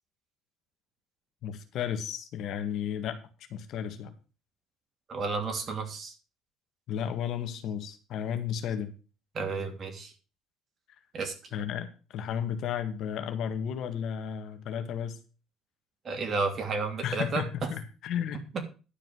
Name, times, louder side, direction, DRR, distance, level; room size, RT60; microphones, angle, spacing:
voice 1, 1.4-3.2 3.5-4.1 6.9-8.9 11.5-15.2 17.0-18.4, left 8 dB, 60° left, 8 dB, 1.8 m, -33 dB
voice 2, 5.1-6.1 9.3-10.1 11.1-11.3 16.0-17.4, right 4 dB, 35° right, 4 dB, 3.0 m, -31 dB
12.0 x 5.0 x 7.7 m, 0.35 s
cardioid pair, 115°, 0 cm